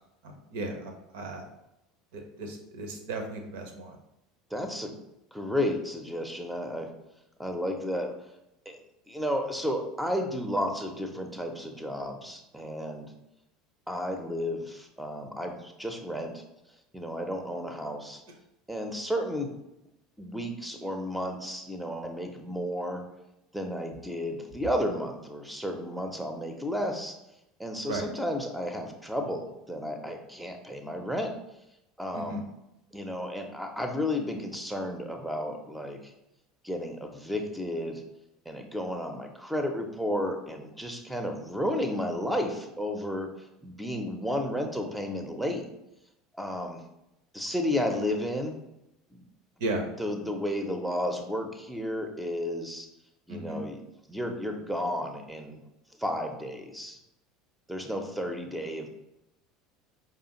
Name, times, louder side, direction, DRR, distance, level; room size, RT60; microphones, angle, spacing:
voice 1, 0.2-1.5 2.1-4.0 27.8-28.1 32.1-32.4 49.6-49.9 53.3-53.6, right 2 dB, 65° right, 4 dB, 0.6 m, -35 dB
voice 2, 4.5-4.9 5.3-6.9 7.4-8.2 8.7-8.8 9.1-13.1 13.9-16.4 16.9-18.2 18.7-19.5 20.2-23.0 23.5-27.2 27.6-31.4 32.0-32.4 32.9-36.1 36.6-38.0 38.5-43.3 43.6-45.7 46.3-46.8 47.3-48.6 49.1-49.2 50.0-52.9 53.3-53.8 54.1-55.6 56.0-57.0 57.7-58.9, left 1 dB, 5° right, 4 dB, 0.6 m, -32 dB
5.0 x 2.4 x 2.9 m, 0.88 s
figure-of-eight pair, 70°, 0 cm